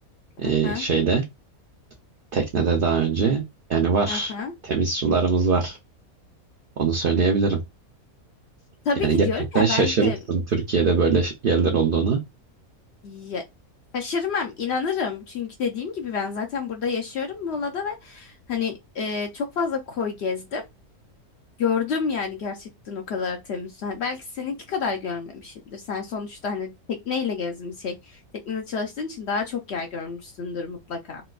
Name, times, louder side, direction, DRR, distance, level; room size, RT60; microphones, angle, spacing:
voice 1, 0.4-1.2 2.3-3.4 3.7-4.3 4.6-5.8 6.8-7.6 9.0-9.3 9.5-12.2, right 5 dB, 60° right, 0.5 m, -21 dB
voice 2, 4.1-4.5 8.8-10.2 13.0-13.4 13.9-20.6 21.6-28.2 28.5-31.2, left 5 dB, 65° left, 0.7 m, -29 dB
4.1 x 2.2 x 2.3 m
omnidirectional pair, 1.5 m